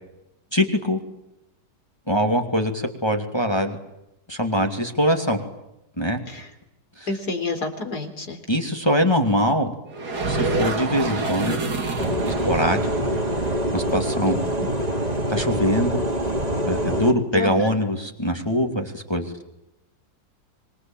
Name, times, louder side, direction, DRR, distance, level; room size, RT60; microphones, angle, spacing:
voice 1, 0.5-1.0 2.1-3.8 4.3-5.4 6.0-6.2 7.0-7.1 8.5-9.7 10.3-11.7 12.2-12.9 13.7-14.4 15.3-16.0 16.6-19.3, equal, 15° left, 4 dB, 2.6 m, -23 dB
voice 2, 7.1-8.4 14.3-14.4 17.3-17.5, left 3 dB, 60° left, 7 dB, 4.4 m, -28 dB
sound 1, 9.9-15.6, right 3 dB, 60° right, 3.0 m, -29 dB
sound 2, 12.0-17.1, equal, 20° right, 2.9 m, -25 dB
26.0 x 23.5 x 8.9 m, 0.88 s
omnidirectional pair, 1.9 m